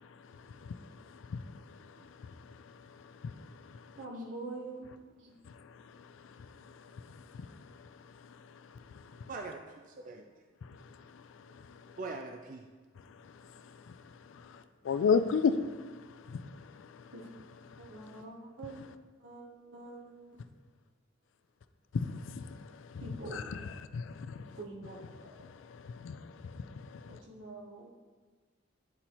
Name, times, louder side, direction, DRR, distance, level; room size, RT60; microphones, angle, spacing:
voice 1, 4.0-4.9 5.2-5.4 17.1-17.3 17.8-18.8 19.2-19.5 19.7-20.0 23.0-23.5 24.6-25.3 27.1-27.9, right 2 dB, 70° right, 0 dB, 1.0 m, -44 dB
voice 2, 9.3-10.3 12.0-12.7, right 3 dB, 40° right, 3 dB, 0.3 m, -43 dB
voice 3, 14.8-15.6 16.3-16.4 16.7-16.8 21.9-22.6 22.9-23.0 23.3-23.6 23.9-24.5 25.7-27.2, left 5 dB, 75° left, 11 dB, 0.3 m, -32 dB
9.5 x 4.1 x 2.9 m, 1.4 s
head